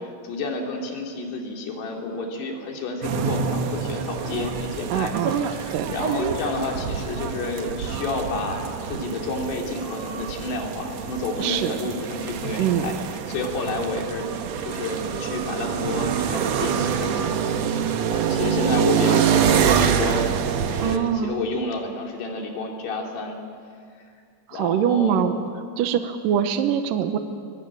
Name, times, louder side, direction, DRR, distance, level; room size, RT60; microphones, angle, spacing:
voice 1, 0.0-12.9 13.3-20.3 20.6-23.4 24.5-25.2, left 3 dB, 75° left, 1 dB, 5.0 m, -30 dB
sound 1, 3.0-21.0, right 7 dB, 90° right, 1.5 m, -26 dB
voice 2, 4.9-5.4 5.7-5.9 11.4-11.8 12.6-12.9 20.8-21.4 24.5-25.3 25.8-27.2, right 9 dB, 70° right, 8 dB, 2.3 m, -23 dB
23.0 x 22.0 x 8.7 m, 2.3 s
omnidirectional pair, 4.8 m